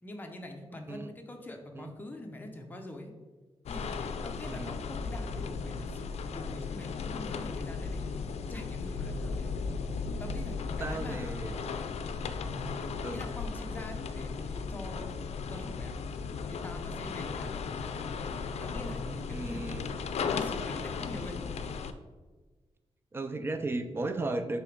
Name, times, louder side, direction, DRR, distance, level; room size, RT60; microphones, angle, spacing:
voice 1, 0.0-3.1 3.7-8.1 8.5-9.5 10.2-11.7 12.4-12.8 13.1-15.1 15.5-15.9 16.4-18.1 18.6-19.9 20.2-21.4, left 1 dB, 15° left, 3 dB, 0.7 m, -44 dB
sound 1, 3.7-21.9, left 5 dB, 85° left, 0.4 m, -36 dB
voice 2, 10.8-11.6 13.0-13.3 19.3-19.8 23.1-24.6, right 2 dB, 20° right, 9 dB, 0.4 m, -35 dB
6.2 x 3.4 x 5.2 m, 1.3 s
wide cardioid pair, 180°, 11 cm